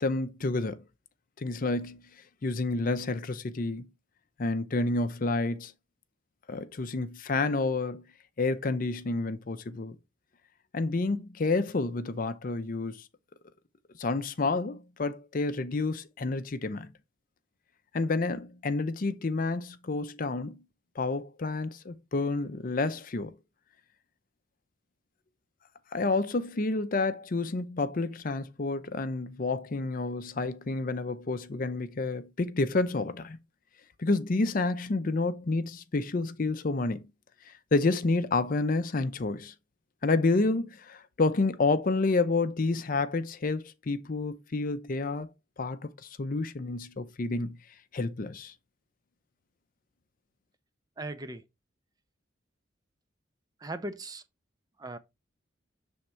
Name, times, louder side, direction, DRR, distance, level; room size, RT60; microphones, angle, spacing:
voice 1, 0.0-0.8 1.4-2.0 2.4-3.9 4.4-5.7 6.5-8.0 8.4-10.0 10.7-13.0 14.0-16.9 17.9-20.6 21.0-23.3 25.9-33.4 34.0-37.0 37.5-39.5 40.0-45.3 45.6-47.6 47.9-48.5, left 3 dB, 45° left, 0.5 m, -29 dB
voice 2, 51.0-51.4 53.6-54.2 54.8-55.0, right 2 dB, 20° right, 0.5 m, -38 dB
6.5 x 3.5 x 4.3 m
head